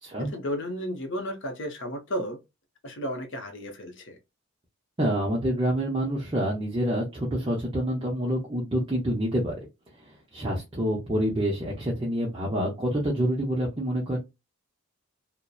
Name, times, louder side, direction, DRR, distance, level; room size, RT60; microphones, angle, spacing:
voice 1, 0.2-2.4 2.8-4.2, equal, 55° left, 0.6 m, -33 dB
voice 2, 5.0-9.6 10.0-14.2, equal, 20° right, 0.5 m, -27 dB
2.7 x 2.0 x 2.3 m
head